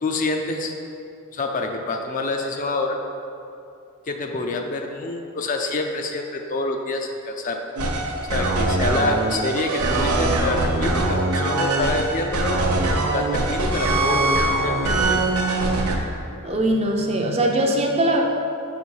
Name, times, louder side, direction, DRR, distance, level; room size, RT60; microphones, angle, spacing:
voice 1, 0.0-0.7 1.3-3.0 4.1-7.6 8.3-12.6 13.1-15.2, left 2 dB, 35° left, 3 dB, 0.4 m, -27 dB
sound 1, 7.8-16.0, right 2 dB, 80° right, 0.7 m, -22 dB
voice 2, 16.4-18.2, right 1 dB, 25° right, 2 dB, 0.5 m, -21 dB
5.8 x 4.1 x 4.7 m, 2.6 s
head